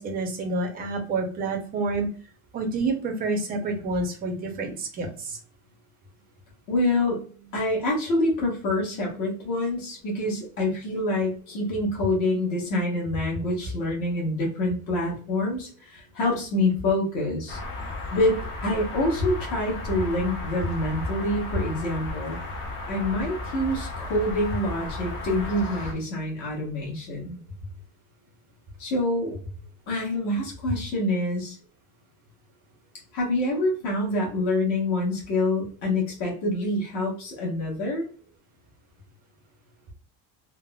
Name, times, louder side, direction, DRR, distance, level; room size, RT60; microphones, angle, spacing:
voice 1, 0.0-2.1 2.5-5.4, right 3 dB, 25° right, 3 dB, 0.5 m, -28 dB
voice 2, 6.7-17.6 18.1-22.4 22.9-27.4 28.8-29.4 29.9-31.6 33.1-38.1, left 1 dB, 50° left, -2 dB, 1.2 m, -26 dB
sound 1, 17.5-25.9, left 2 dB, 30° left, 0.6 m, -34 dB
3.5 x 2.0 x 2.2 m, 0.40 s
cardioid pair, 175°, 38 cm